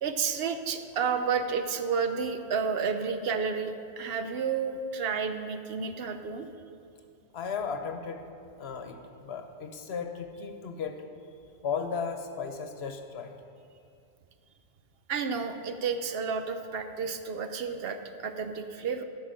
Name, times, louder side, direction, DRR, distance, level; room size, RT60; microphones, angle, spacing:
voice 1, 0.0-6.5 15.1-19.0, right 5 dB, 75° right, 8 dB, 0.9 m, -31 dB
voice 2, 7.3-8.2 8.6-11.0 11.6-13.3, left 6 dB, 90° left, 6 dB, 1.1 m, -35 dB
13.0 x 6.2 x 5.0 m, 2.4 s
omnidirectional pair, 1.0 m